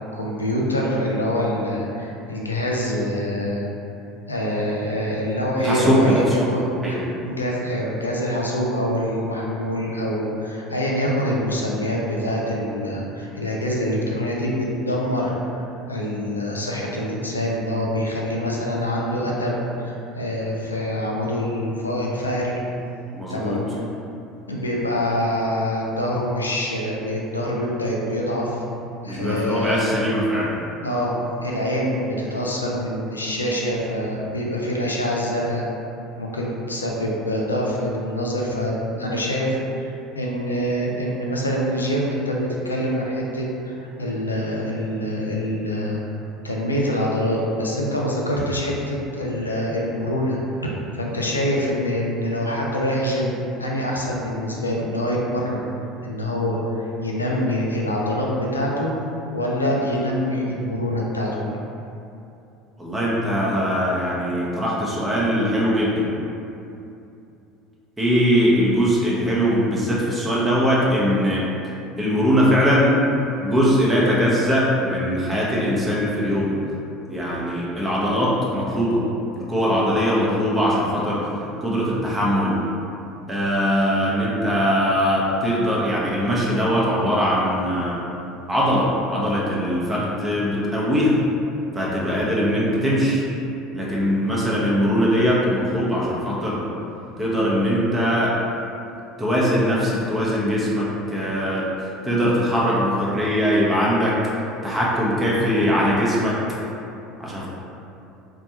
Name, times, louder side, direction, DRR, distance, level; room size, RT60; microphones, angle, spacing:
voice 1, 0.1-3.7 4.3-22.5 23.3-23.6 24.5-28.6 29.0-29.8 30.8-31.1 31.4-35.8 36.2-46.0 46.4-55.7 56.0-58.9 59.3-61.4, equal, 80° left, -2 dB, 0.4 m, -25 dB
voice 2, 5.6-6.5 6.8-7.0 23.1-23.6 29.1-30.6 62.8-66.1 68.0-71.4 72.0-73.0 73.4-76.5 77.1-79.0 79.3-81.3 81.6-82.6 83.3-88.0 88.5-91.2 91.7-93.2 93.7-96.6 97.2-98.4 99.2-104.2 104.6-106.4 107.2-107.5, equal, 10° right, -6 dB, 0.7 m, -21 dB
4.2 x 2.2 x 2.8 m, 2.7 s
figure-of-eight pair, 65°, 0 cm